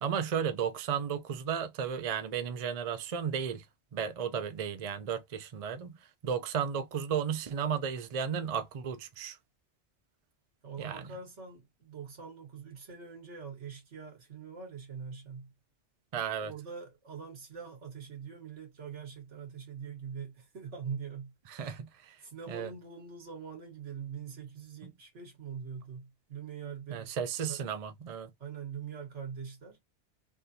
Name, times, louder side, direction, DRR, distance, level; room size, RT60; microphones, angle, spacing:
voice 1, 0.0-3.6 3.9-5.9 6.2-9.4 10.8-11.0 16.1-16.5 21.5-22.2 22.5-22.7 26.9-28.3, right 7 dB, 45° right, 0.5 m, -34 dB
voice 2, 10.6-15.5 16.4-21.8 22.2-27.1 27.4-27.6 28.4-29.8, right 6 dB, 85° right, 1.7 m, -43 dB
3.4 x 2.5 x 2.7 m
omnidirectional pair, 1.2 m